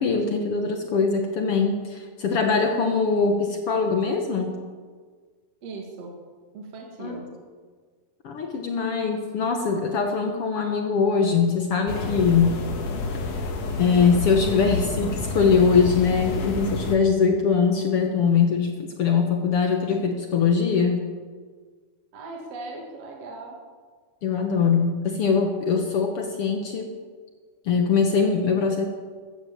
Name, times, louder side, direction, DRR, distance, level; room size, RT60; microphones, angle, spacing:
voice 1, 0.0-4.6 7.0-7.2 8.2-12.6 13.8-21.0 24.2-26.9 27.6-28.8, left 5 dB, 75° left, 4 dB, 1.3 m, -22 dB
voice 2, 5.6-6.1 6.5-7.3 22.1-23.6, right 3 dB, 45° right, 0 dB, 2.8 m, -38 dB
sound 1, 11.9-17.0, left 3 dB, 50° left, 2.1 m, -29 dB
14.5 x 12.5 x 7.3 m, 1.6 s
omnidirectional pair, 4.4 m